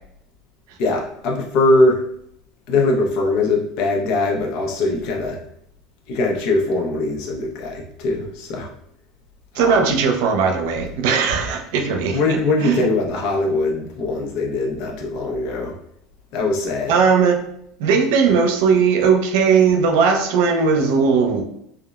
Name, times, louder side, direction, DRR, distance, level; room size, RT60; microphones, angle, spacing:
voice 1, 0.8-2.0 2.7-5.4 6.1-8.7 9.5-10.0 12.1-15.8 16.3-17.0, left 2 dB, 65° left, 0 dB, 0.7 m, -21 dB
voice 2, 9.5-12.2 12.6-12.9 16.9-17.4 17.8-21.4, right 5 dB, 75° right, 4 dB, 0.5 m, -18 dB
3.5 x 2.0 x 2.3 m, 0.71 s
supercardioid pair, 120°, 0 cm